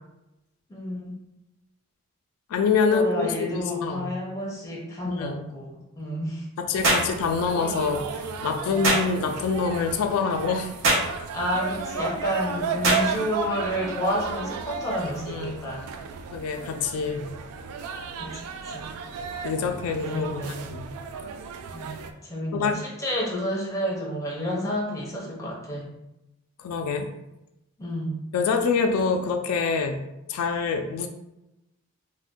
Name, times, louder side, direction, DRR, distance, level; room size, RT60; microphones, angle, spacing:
voice 1, 0.7-1.2 2.9-6.5 8.6-8.9 11.3-15.9 18.2-18.9 20.1-20.7 21.7-25.9 27.8-28.2, equal, 15° left, -3 dB, 0.6 m, -30 dB
voice 2, 2.5-4.1 5.1-5.4 6.6-10.7 15.3-15.6 16.3-17.3 19.4-20.9 22.5-22.8 26.6-27.1 28.3-30.0 30.3-31.1, left 5 dB, 85° left, 5 dB, 0.3 m, -26 dB
sound 1, 6.7-22.1, right 6 dB, 85° right, 0.3 m, -34 dB
sound 2, 6.8-7.1 8.8-9.1 10.8-11.1 12.8-13.1, right 2 dB, 65° right, 0.8 m, -21 dB
2.5 x 2.1 x 3.5 m, 0.91 s
head